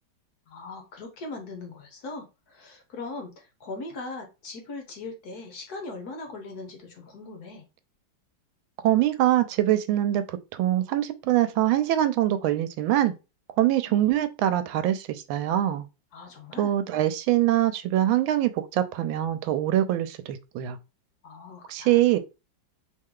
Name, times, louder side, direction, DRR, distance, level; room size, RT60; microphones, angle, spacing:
voice 1, 0.5-7.6 13.9-14.0 16.1-16.7 21.2-22.0, left 3 dB, 60° left, 1.3 m, -40 dB
voice 2, 8.8-13.1 13.6-15.9 16.6-20.8 21.7-22.2, right 13 dB, 85° right, 1.4 m, -24 dB
3.3 x 3.2 x 3.6 m
omnidirectional pair, 2.1 m